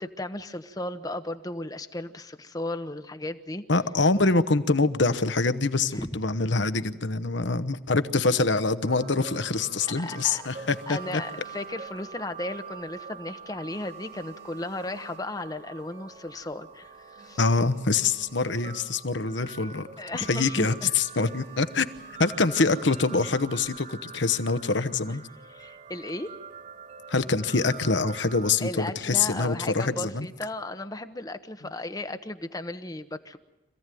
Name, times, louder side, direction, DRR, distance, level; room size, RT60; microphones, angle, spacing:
voice 1, 0.0-3.6 5.9-6.1 10.0-10.4 10.9-17.4 20.0-20.9 25.5-26.3 28.6-33.4, left 1 dB, 20° left, 9 dB, 0.9 m, -35 dB
voice 2, 3.7-11.2 17.4-19.9 20.1-21.9 22.2-25.2 27.1-30.3, left 3 dB, 65° left, 12 dB, 1.1 m, -25 dB
sound 1, 8.9-28.6, right 6 dB, 40° right, 2.1 m, -45 dB
sound 2, 8.9-9.6 10.0-12.5 12.8-13.1 13.4-15.7 16.1-16.2 16.4-16.5 16.9-19.1 19.4-19.6 19.9-20.2 20.7-22.5 23.2-23.8, right 4 dB, 85° right, 5.2 m, -56 dB
26.0 x 16.0 x 9.2 m, 1.0 s
head